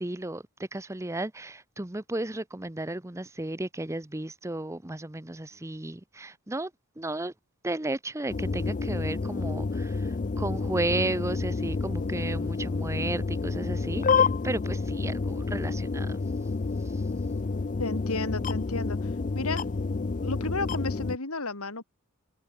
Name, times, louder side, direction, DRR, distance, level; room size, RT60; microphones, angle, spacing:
voice 1, 0.0-6.7 7.0-7.3 7.6-16.2, right 2 dB, 15° right, 0.8 m, -34 dB
sound 1, 8.3-21.2, left 4 dB, 35° left, 0.4 m, -29 dB
voice 2, 17.8-19.6 20.2-21.8, left 3 dB, 75° left, 3.2 m, -33 dB
head